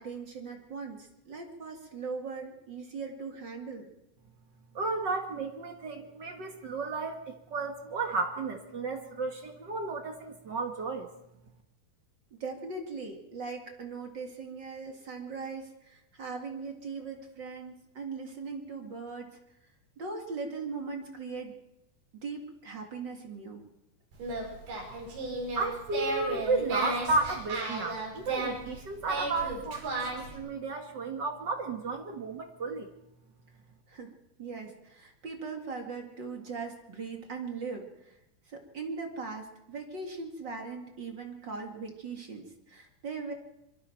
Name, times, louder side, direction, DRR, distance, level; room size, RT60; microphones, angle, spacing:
voice 1, 0.0-3.9 12.3-19.4 20.0-21.5 22.2-23.6 33.9-34.1 34.4-38.2 38.5-43.3, right 4 dB, 35° right, 2 dB, 2.1 m, -39 dB
voice 2, 4.7-11.1 25.5-32.9, right 3 dB, 55° right, 3 dB, 1.2 m, -33 dB
Singing, 24.1-30.4, right 2 dB, 80° right, 7.4 m, -35 dB
25.5 x 23.0 x 4.6 m, 0.87 s
omnidirectional pair, 4.4 m